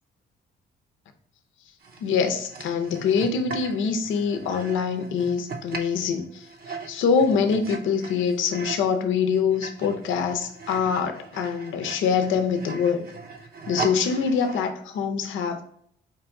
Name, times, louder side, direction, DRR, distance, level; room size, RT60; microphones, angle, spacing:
sound 1, 1.8-8.9 9.3-14.7, right 4 dB, 50° right, 0.8 m, -38 dB
voice 1, 2.0-13.0 13.7-15.6, left 6 dB, 75° left, 6 dB, 0.6 m, -24 dB
4.4 x 2.6 x 4.4 m, 0.65 s
cardioid pair, 90°, 20 cm